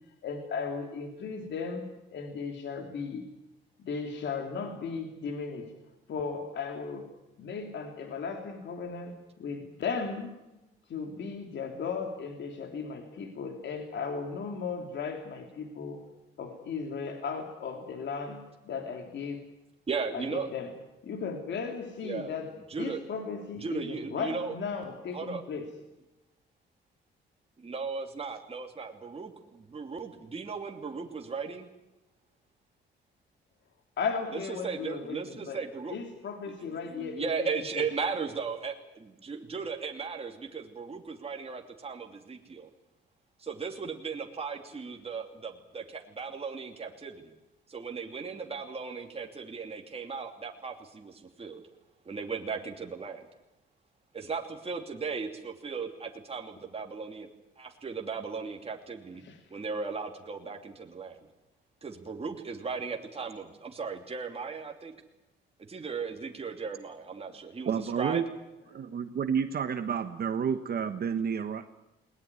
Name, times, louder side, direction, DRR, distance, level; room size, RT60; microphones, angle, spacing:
voice 1, 0.2-3.2 3.8-5.7 6.1-7.1 7.4-10.3 10.9-16.0 16.4-19.4 20.1-20.7 21.0-22.5 22.8-25.7 34.0-35.6 35.9-37.9 59.2-59.4, left 5 dB, 65° left, 4 dB, 3.0 m, -36 dB
voice 2, 19.9-20.5 22.0-22.4 22.7-23.0 23.6-24.5 25.1-25.4 27.6-31.7 34.3-36.0 36.4-42.7 43.4-47.3 47.7-51.6 52.0-53.3 54.1-57.3 57.6-59.2 59.5-61.2 61.8-64.9 65.7-68.2, right 5 dB, 30° right, 2 dB, 2.8 m, -37 dB
voice 3, 67.6-68.2 68.7-71.7, right 7 dB, 50° right, 9 dB, 1.2 m, -30 dB
20.5 x 19.5 x 9.8 m, 0.99 s
cardioid pair, 90°, 20 cm